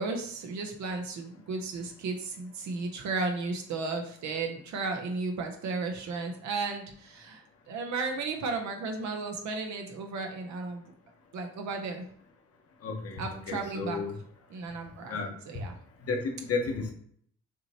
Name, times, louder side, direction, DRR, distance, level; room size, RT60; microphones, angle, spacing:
voice 1, 0.0-10.9 11.3-12.0 13.2-14.2 14.5-15.8, right 3 dB, 70° right, 3 dB, 0.8 m, -34 dB
voice 2, 12.8-13.2 13.5-14.1 15.1-15.3 16.1-16.9, left 4 dB, 50° left, 3 dB, 1.1 m, -32 dB
6.0 x 2.9 x 2.8 m, 0.62 s
cardioid pair, 90°, 30 cm